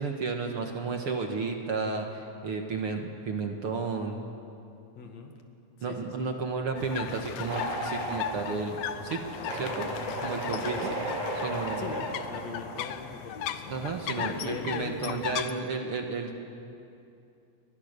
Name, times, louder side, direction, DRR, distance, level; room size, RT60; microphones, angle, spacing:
voice 1, 0.0-4.2 5.8-9.2 9.5-9.9 10.2-11.0 11.4-11.8 13.7-16.4, right 4 dB, 50° right, 3 dB, 2.1 m, -32 dB
voice 2, 5.0-5.4 5.8-6.3 10.6-11.1 11.8-13.8 14.0-15.4, left 4 dB, 60° left, 3 dB, 2.9 m, -40 dB
sound 1, 6.8-15.5, left 10 dB, 80° left, 2.4 m, -37 dB
sound 2, 7.5-13.0, right 2 dB, 75° right, 4.7 m, -36 dB
29.5 x 23.0 x 6.8 m, 2.6 s
omnidirectional pair, 3.5 m